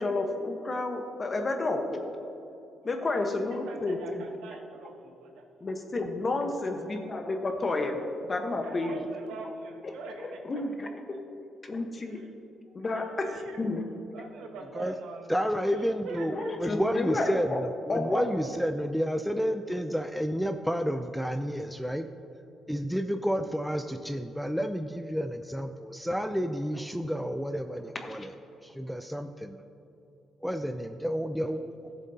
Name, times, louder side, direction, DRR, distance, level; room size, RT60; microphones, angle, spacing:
voice 1, 0.0-2.0 2.8-4.0 5.6-9.0 9.8-9.9 10.2-10.9 11.6-12.2 12.7-13.3 13.6-13.8 16.2-17.6 17.9-18.3 28.0-28.3, left 2 dB, 35° left, 4 dB, 1.1 m, -31 dB
voice 2, 2.9-5.4 6.7-6.9 8.6-11.2 12.0-12.3 12.7-13.6 14.1-16.5 19.3-19.4, right 4 dB, 85° right, 3 dB, 1.1 m, -44 dB
voice 3, 15.3-22.1 22.7-28.3 28.6-29.6 30.4-31.6, equal, ahead, 7 dB, 0.4 m, -30 dB
14.5 x 7.3 x 2.8 m, 2.8 s
cardioid pair, 90°, 0 cm